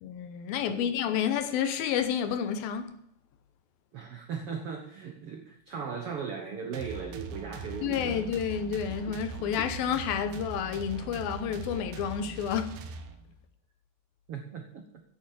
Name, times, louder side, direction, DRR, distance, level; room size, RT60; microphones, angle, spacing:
voice 1, 0.0-2.9 7.8-12.8, left 8 dB, 75° left, 2.7 m, -30 dB
voice 2, 3.9-8.4 8.9-9.0 14.3-14.9, right 6 dB, 90° right, 1.2 m, -38 dB
sound 1, 6.7-13.4, right 4 dB, 70° right, 2.9 m, -41 dB
10.5 x 8.7 x 7.6 m
omnidirectional pair, 4.5 m